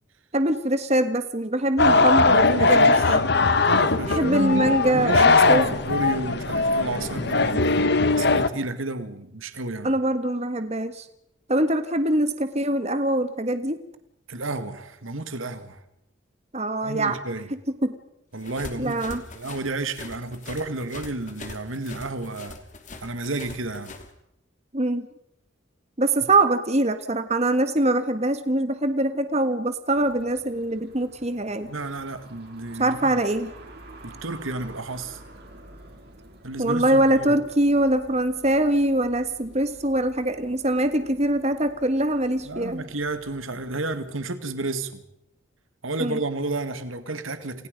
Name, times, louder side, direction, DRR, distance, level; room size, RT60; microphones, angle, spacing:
voice 1, 0.3-3.2 4.1-5.7 9.8-11.1 11.5-13.8 16.5-17.2 17.7-17.9 18.8-19.2 24.7-25.1 26.0-31.7 32.8-33.5 36.6-42.8 46.0-46.2, right 1 dB, 35° right, 1.5 m, -23 dB
sound 1, 1.8-8.5, left 3 dB, 55° left, 1.3 m, -20 dB
voice 2, 1.8-3.2 3.6-9.9 14.3-15.8 16.8-17.5 18.3-22.6 23.0-24.0 31.6-33.2 34.0-35.2 36.4-37.4 42.5-45.0 45.8-47.7, right 2 dB, 80° right, 2.1 m, -31 dB
sound 2, 18.4-24.1, left 2 dB, 40° left, 3.0 m, -42 dB
sound 3, 29.9-44.1, right 1 dB, 50° right, 6.0 m, -49 dB
29.5 x 29.0 x 5.3 m
head